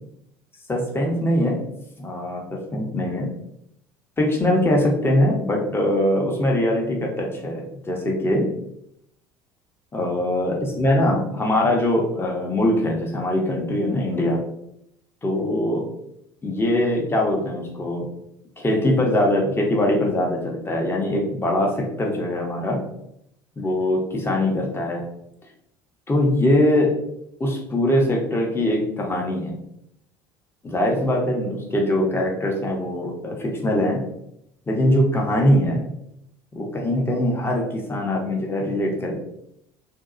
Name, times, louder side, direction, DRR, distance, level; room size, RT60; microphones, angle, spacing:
voice 1, 0.7-1.6 2.0-3.3 4.2-8.5 9.9-14.4 15.2-15.8 16.4-18.1 18.6-22.8 23.6-25.0 26.1-26.9 27.4-29.6 30.6-34.0 34.7-35.9 36.6-39.2, left 1 dB, 20° left, -1 dB, 0.8 m, -22 dB
2.7 x 2.3 x 2.5 m, 0.76 s
hypercardioid pair, 65°, 12 cm